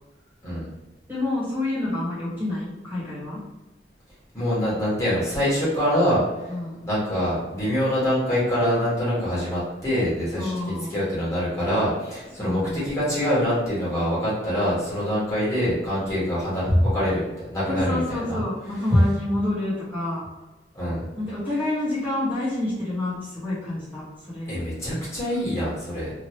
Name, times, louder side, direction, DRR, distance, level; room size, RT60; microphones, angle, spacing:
voice 1, 1.1-3.4 6.5-6.9 10.3-10.9 12.4-12.8 16.7-16.9 17.7-20.2 21.2-24.5, left 1 dB, 10° right, -10 dB, 1.2 m, -26 dB
voice 2, 4.3-6.2 6.8-18.4 20.7-21.0 24.5-26.1, equal, 15° left, -9 dB, 1.4 m, -25 dB
3.0 x 2.6 x 2.8 m, 1.1 s
head